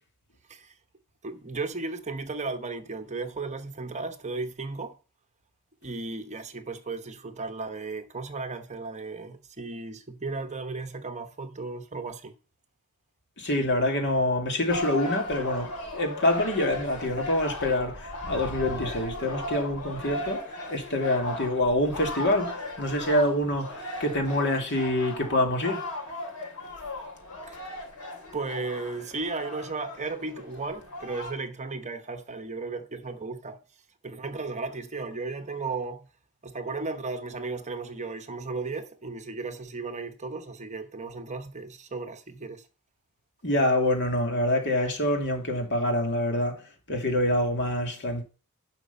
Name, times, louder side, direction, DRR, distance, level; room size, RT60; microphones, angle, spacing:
voice 1, 1.2-4.9 5.8-12.3 27.5-27.6 28.3-33.6 34.0-36.1 36.4-42.7, right 3 dB, 30° right, 1.0 m, -35 dB
voice 2, 13.4-25.8 43.4-46.6 46.9-48.2, left 1 dB, 55° left, 2.5 m, -26 dB
sound 1, 14.7-31.3, left 1 dB, 90° left, 4.4 m, -37 dB
11.0 x 6.0 x 5.6 m
head